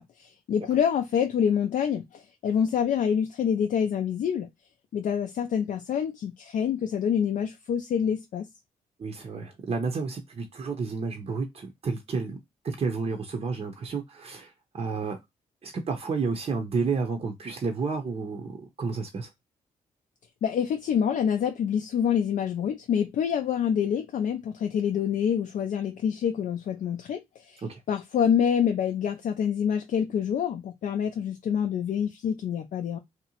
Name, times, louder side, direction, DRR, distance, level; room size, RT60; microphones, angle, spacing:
voice 1, 0.0-4.5 4.9-8.5 20.4-27.6 27.9-33.0, left 8 dB, 60° left, 0.4 m, -26 dB
voice 2, 9.0-12.4 12.6-15.2 15.6-19.3 27.6-27.8, right 4 dB, 45° right, 0.6 m, -31 dB
2.7 x 2.1 x 2.8 m
supercardioid pair, 60°, 15 cm